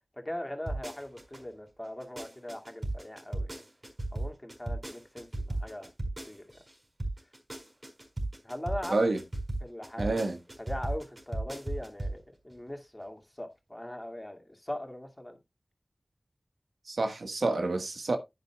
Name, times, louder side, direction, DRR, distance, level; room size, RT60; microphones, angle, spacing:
voice 1, 0.2-3.6 4.1-5.9 6.3-6.6 8.4-9.0 9.6-10.1 10.6-15.4, left 1 dB, 20° left, 2.2 m, -40 dB
sound 1, 0.7-1.4 1.8-6.7 7.0-12.2 12.5-12.6, right 1 dB, 40° right, 4.9 m, -35 dB
voice 2, 8.9-9.2 10.0-10.4 16.9-18.2, right 2 dB, 90° right, 1.4 m, -28 dB
10.5 x 9.6 x 2.3 m
wide cardioid pair, 45°, 0 cm